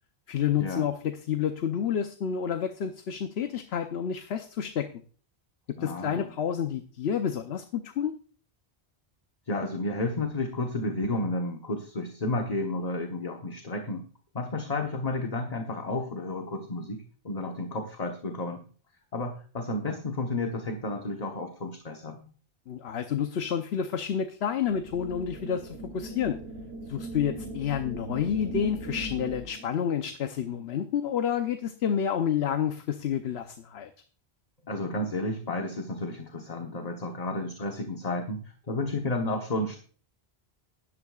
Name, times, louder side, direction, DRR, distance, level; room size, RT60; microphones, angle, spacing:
voice 1, 0.3-4.9 5.8-8.2 22.7-26.4 26.9-33.9, left 8 dB, 75° left, 7 dB, 1.0 m, -29 dB
voice 2, 5.8-6.3 9.5-14.0 14.3-18.6 19.1-22.3 34.6-39.8, left 2 dB, 40° left, 3 dB, 1.2 m, -32 dB
sound 1, 24.7-29.7, right 1 dB, 70° right, 1.3 m, -39 dB
17.0 x 11.0 x 2.4 m, 0.41 s
omnidirectional pair, 1.1 m